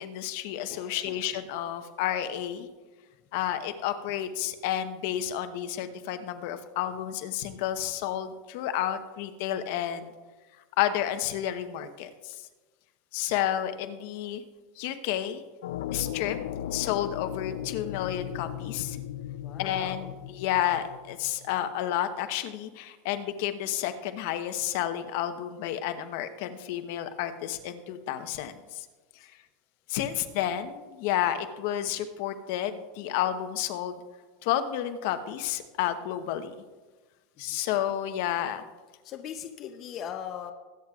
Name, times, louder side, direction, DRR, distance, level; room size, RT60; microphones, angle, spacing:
voice 1, 0.0-2.7 3.3-10.1 10.8-12.4 13.1-14.4 14.8-15.4 15.9-16.4 16.7-19.0 19.6-20.1 20.3-28.9 29.9-34.0 34.4-36.5 37.4-38.6, left 11 dB, 60° left, 9 dB, 0.9 m, -31 dB
voice 2, 0.7-1.4 19.4-20.2 29.2-29.3 30.1-30.3 37.4-37.6 39.0-40.5, left 9 dB, 35° left, 5 dB, 0.6 m, -41 dB
sound 1, 15.6-21.5, left 11 dB, 85° left, 0.4 m, -37 dB
21.5 x 9.1 x 2.4 m, 1.3 s
supercardioid pair, 155°, 0 cm